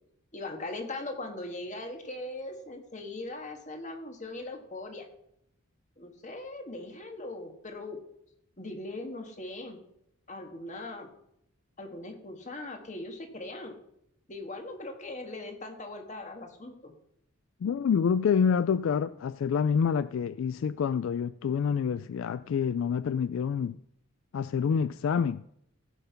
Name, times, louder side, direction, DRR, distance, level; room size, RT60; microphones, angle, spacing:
voice 1, 0.3-5.1 6.0-8.0 8.6-9.8 10.3-11.1 11.8-13.8 14.3-16.9, left 2 dB, 35° left, 1.6 m, -40 dB
voice 2, 17.6-23.8 24.3-25.4, left 6 dB, 70° left, 0.3 m, -27 dB
15.5 x 5.7 x 5.7 m
head